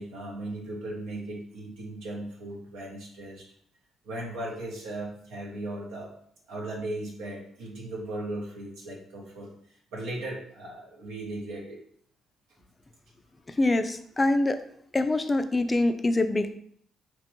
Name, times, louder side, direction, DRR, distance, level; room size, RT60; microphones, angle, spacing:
voice 1, 0.0-3.5 4.0-6.1 6.5-9.5 9.9-11.8, right 1 dB, 85° right, -2 dB, 0.8 m, -37 dB
voice 2, 13.6-14.6 14.9-16.6, left 2 dB, 25° left, 8 dB, 0.3 m, -24 dB
2.9 x 2.1 x 3.0 m, 0.64 s
supercardioid pair, 60°, 0 cm